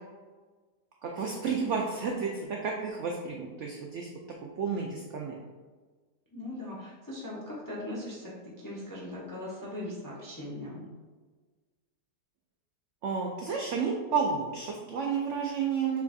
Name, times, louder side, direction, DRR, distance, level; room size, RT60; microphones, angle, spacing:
voice 1, 1.0-4.1 4.6-5.4 13.0-16.0, right 5 dB, 75° right, 0 dB, 0.6 m, -31 dB
voice 2, 6.3-10.9, left 1 dB, 30° left, -5 dB, 0.4 m, -39 dB
6.7 x 2.4 x 2.6 m, 1.4 s
omnidirectional pair, 1.7 m